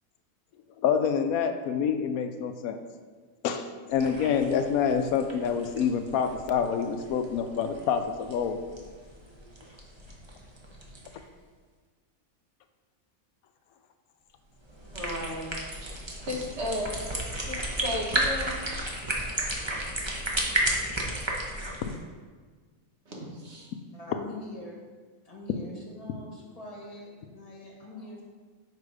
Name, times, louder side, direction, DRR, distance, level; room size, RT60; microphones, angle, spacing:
voice 1, 0.8-2.8 3.4-8.6 15.9-16.0 21.8-21.9, left 7 dB, 90° left, 8 dB, 1.1 m, -27 dB
sound 1, 3.9-11.2 14.6-22.0, right 1 dB, 25° right, 0.8 m, -34 dB
voice 2, 14.9-15.5 15.8-17.0 17.3-19.0 23.1-23.7, left 1 dB, 55° right, -2 dB, 1.5 m, -35 dB
voice 3, 23.9-24.8 25.2-28.2, left 1 dB, 25° left, -2 dB, 1.3 m, -43 dB
6.6 x 4.8 x 4.9 m, 1.5 s
omnidirectional pair, 1.5 m